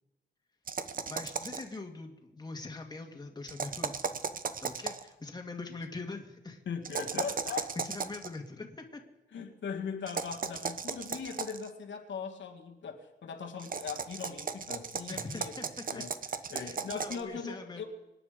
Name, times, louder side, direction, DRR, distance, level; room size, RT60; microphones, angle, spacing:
sound 1, 0.7-1.7 3.5-5.1 6.8-8.3 10.1-11.7 13.6-17.2, right 6 dB, 45° right, 1.0 m, -36 dB
voice 1, 1.1-4.0 4.6-6.6 7.8-9.0 15.1-16.0 16.4-17.8, left 3 dB, 20° left, 3 dB, 2.0 m, -42 dB
voice 2, 6.7-7.8 9.3-15.5 15.9-16.1 16.5-17.8, left 6 dB, 80° left, 3 dB, 2.0 m, -39 dB
25.0 x 10.0 x 5.1 m, 1.0 s
wide cardioid pair, 135°, 19 cm